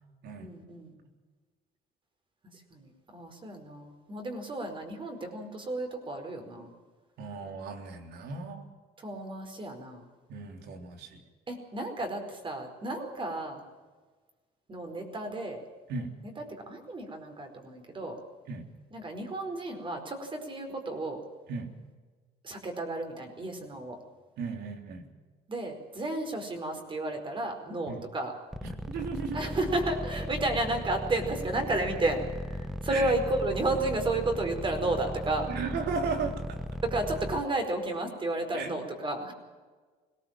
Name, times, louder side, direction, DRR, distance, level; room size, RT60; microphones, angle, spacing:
voice 1, 0.4-0.9 2.5-6.7 9.0-10.1 11.5-13.6 14.7-15.6 16.2-18.2 18.9-21.2 22.4-24.0 25.5-28.3 29.3-35.5 36.8-39.3, right 2 dB, 30° right, 5 dB, 4.8 m, -32 dB
voice 2, 7.2-8.7 10.3-11.2 15.9-16.1 18.5-18.7 21.5-21.7 24.4-25.1 27.9-28.0 28.6-29.4 32.9-33.1 35.5-36.6 38.5-38.7, right 4 dB, 75° right, 4 dB, 3.6 m, -35 dB
sound 1, 28.5-37.4, equal, ahead, 1.2 m, -36 dB
22.0 x 18.0 x 7.5 m, 1.4 s
cardioid pair, 110°, 17 cm